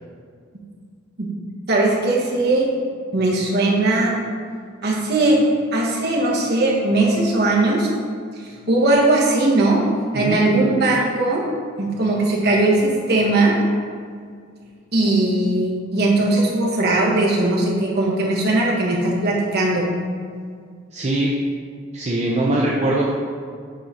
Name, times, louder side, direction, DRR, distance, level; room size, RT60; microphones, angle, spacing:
voice 1, 1.7-2.7 3.1-4.1 4.8-5.4 5.7-7.9 8.7-9.8 10.1-11.4 11.8-13.5 14.9-19.9, right 2 dB, 55° right, -3 dB, 1.4 m, -19 dB
voice 2, 20.9-21.3 21.9-23.1, right 1 dB, 35° right, -4 dB, 0.6 m, -21 dB
7.8 x 3.9 x 4.3 m, 2.1 s
head